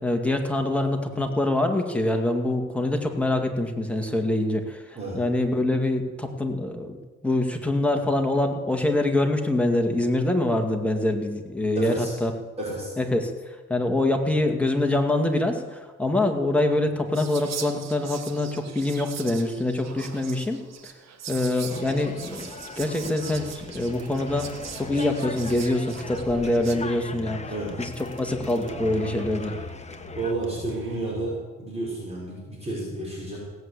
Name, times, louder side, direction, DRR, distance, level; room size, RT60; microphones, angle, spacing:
voice 1, 0.0-7.0 7.2-12.3 13.0-20.6 21.3-22.5 22.8-24.5 24.8-27.4 27.8-29.6, left 1 dB, 5° left, 3 dB, 2.2 m, -25 dB
voice 2, 11.8-12.1 12.6-12.9 27.5-27.7 30.1-33.4, right 2 dB, 20° right, -5 dB, 5.6 m, -31 dB
Whispering, 17.1-26.8, right 8 dB, 60° right, 1.6 m, -41 dB
sound 1, 21.7-30.3, left 4 dB, 20° left, 1.2 m, -40 dB
sound 2, 23.2-31.2, equal, 40° right, 2.4 m, -43 dB
17.5 x 8.2 x 8.3 m, 1.3 s
cardioid pair, 90°, 30 cm